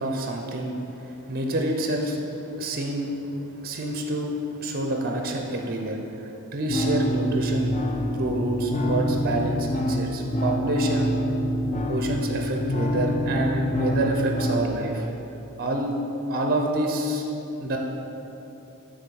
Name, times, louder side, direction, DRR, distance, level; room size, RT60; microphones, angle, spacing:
voice 1, 0.0-2.2 2.6-3.1 3.6-4.3 4.6-7.7 8.1-11.1 11.9-15.0 15.6-15.9 16.3-17.2 17.6-17.8, right 1 dB, 40° right, 2 dB, 0.6 m, -27 dB
sound 1, 6.7-14.7, equal, 30° left, 0.5 m, -26 dB
6.7 x 3.8 x 6.3 m, 3.0 s
head